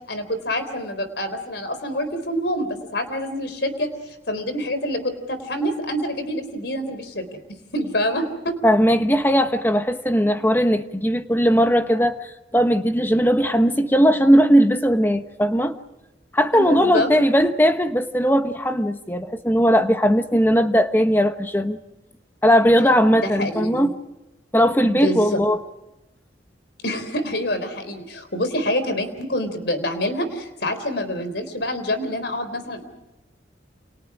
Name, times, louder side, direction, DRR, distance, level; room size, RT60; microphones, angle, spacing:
voice 1, 0.1-8.6 16.5-17.1 23.2-23.9 24.8-25.2 26.8-32.8, left 1 dB, 65° left, 3.9 m, -26 dB
voice 2, 8.6-15.8 16.3-21.8 22.4-23.9 24.5-25.6, equal, 10° left, 1.2 m, -18 dB
29.0 x 28.5 x 4.9 m
head